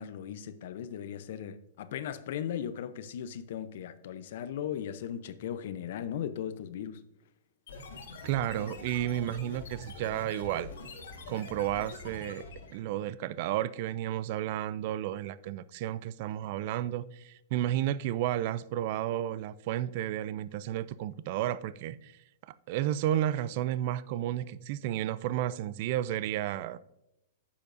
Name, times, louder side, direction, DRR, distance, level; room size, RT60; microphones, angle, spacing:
voice 1, 0.0-7.0, left 9 dB, 65° left, 0.6 m, -37 dB
sound 1, 7.7-12.8, left 3 dB, 85° left, 1.7 m, -45 dB
voice 2, 8.2-10.7 11.3-12.4 12.7-22.2 22.5-26.8, right 12 dB, 50° right, 0.3 m, -32 dB
9.7 x 6.9 x 2.6 m
hypercardioid pair, 140°, 0 cm